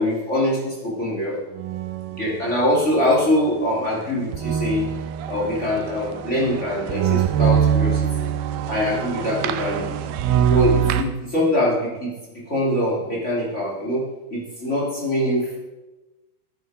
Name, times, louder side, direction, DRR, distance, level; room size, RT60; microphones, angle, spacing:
voice 1, 0.0-1.4 2.1-4.9 5.3-8.3 8.7-9.9 10.5-12.1 12.5-14.0 14.3-15.6, left 1 dB, 20° left, -4 dB, 2.8 m, -23 dB
sound 1, 1.5-2.5 4.3-11.0, right 8 dB, 85° right, 2.7 m, -23 dB
14.0 x 9.2 x 5.1 m, 1.1 s
omnidirectional pair, 4.7 m